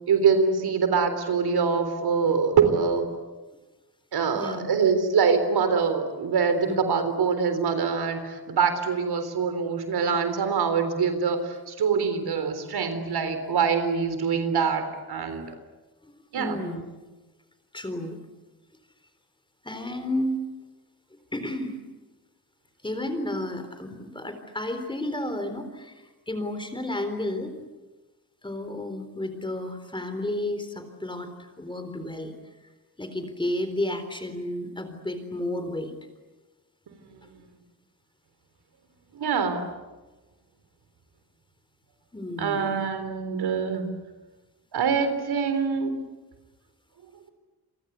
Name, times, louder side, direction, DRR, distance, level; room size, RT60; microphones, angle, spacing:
voice 1, 0.1-3.1 4.1-15.6 16.3-16.6 36.9-37.2 39.1-39.6 42.4-43.8 44.7-46.0, right 5 dB, 85° right, 9 dB, 4.0 m, -24 dB
voice 2, 4.3-4.8 6.6-6.9 16.0-16.9 17.7-18.2 19.6-20.4 21.3-21.8 22.8-27.5 28.4-32.3 33.0-35.9 37.2-37.3 42.1-42.7, left 1 dB, 15° left, 8 dB, 3.9 m, -32 dB
29.0 x 24.0 x 8.3 m, 1.2 s
wide cardioid pair, 135°, 37 cm